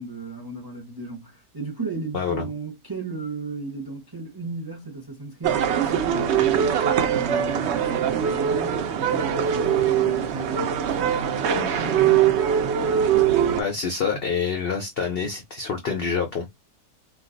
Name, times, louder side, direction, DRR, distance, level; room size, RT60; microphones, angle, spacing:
voice 1, 0.0-12.5, right 3 dB, 25° right, 0.5 m, -36 dB
voice 2, 2.1-2.5 13.5-16.5, left 6 dB, 70° left, 0.5 m, -26 dB
sound 1, 5.4-13.6, right 9 dB, 80° right, 0.6 m, -22 dB
2.4 x 2.3 x 3.7 m
omnidirectional pair, 1.7 m